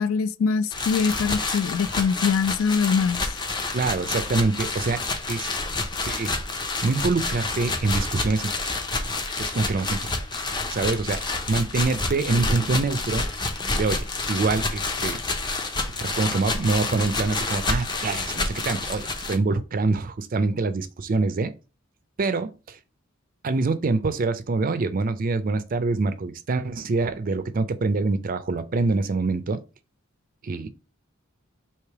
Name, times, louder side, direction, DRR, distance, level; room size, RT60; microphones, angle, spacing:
voice 1, 0.0-3.2, left 5 dB, 75° left, 0.3 m, -23 dB
sound 1, 0.7-19.4, left 3 dB, 20° left, 0.5 m, -29 dB
voice 2, 3.7-5.0 5.3-5.5 6.0-6.4 6.8-8.5 9.4-10.1 10.7-13.3 13.7-15.2 16.0-21.5 22.2-22.8 23.4-29.6 30.4-30.7, right 3 dB, 40° right, 0.4 m, -25 dB
3.3 x 2.9 x 4.5 m
head